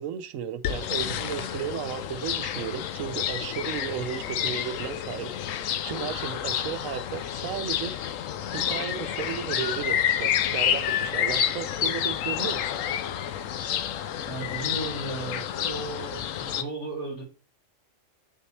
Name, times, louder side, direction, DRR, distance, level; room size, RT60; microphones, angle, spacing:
voice 1, 0.0-7.9 8.5-12.7, right 9 dB, 85° right, 1.0 m, -34 dB
sound 1, 0.6-16.6, left 10 dB, 80° left, 1.0 m, -29 dB
voice 2, 14.2-17.2, right 2 dB, 60° left, 3.5 m, -35 dB
8.0 x 5.6 x 3.3 m
omnidirectional pair, 1.3 m